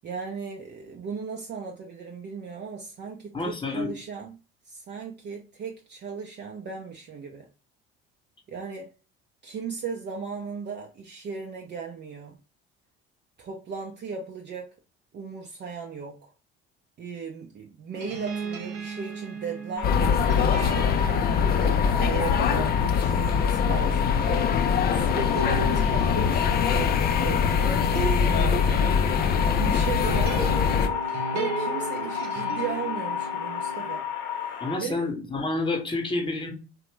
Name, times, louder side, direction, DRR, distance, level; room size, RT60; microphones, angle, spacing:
voice 1, 0.0-4.4 4.7-7.5 8.5-8.9 9.4-12.4 13.4-14.8 15.1-16.2 17.0-21.0 21.5-24.5 24.9-34.0 34.3-35.1, right 6 dB, 35° right, 0.5 m, -37 dB
voice 2, 3.3-3.9 34.6-36.5, left 2 dB, 15° left, 0.9 m, -29 dB
sound 1, 17.9-34.0, right 3 dB, 85° right, 0.6 m, -36 dB
sound 2, 19.8-34.8, left 7 dB, 60° left, 0.7 m, -32 dB
sound 3, 19.8-30.9, left 7 dB, 35° left, 0.4 m, -23 dB
2.9 x 2.2 x 3.2 m
hypercardioid pair, 60°, 30 cm